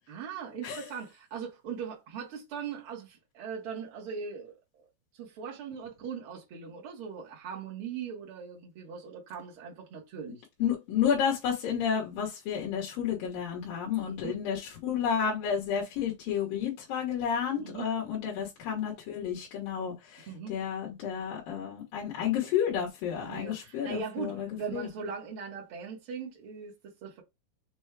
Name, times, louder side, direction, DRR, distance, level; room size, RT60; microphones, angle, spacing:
voice 1, 0.1-4.8 5.2-10.4 14.0-14.3 17.5-17.9 20.2-20.6 23.2-27.2, right 6 dB, 70° right, 1.2 m, -40 dB
voice 2, 10.6-24.8, left 8 dB, 70° left, 2.6 m, -31 dB
6.5 x 2.3 x 3.3 m
omnidirectional pair, 4.6 m